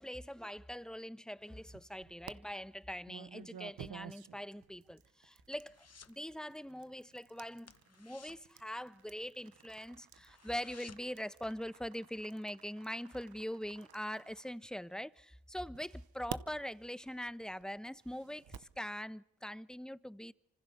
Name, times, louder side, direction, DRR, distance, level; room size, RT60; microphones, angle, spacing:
voice 1, 0.0-20.3, equal, ahead, 1.1 m, -43 dB
sound 1, 1.4-2.3 3.1-15.1 15.7-18.8, right 9 dB, 85° right, 1.0 m, -52 dB
sound 2, 4.6-6.2 6.5-6.8 7.1-7.2 7.6-9.5 9.8-9.9 10.2-11.3 11.6-11.7, left 6 dB, 45° left, 1.1 m, -58 dB
26.0 x 25.0 x 6.8 m
cardioid pair, 45°, 35 cm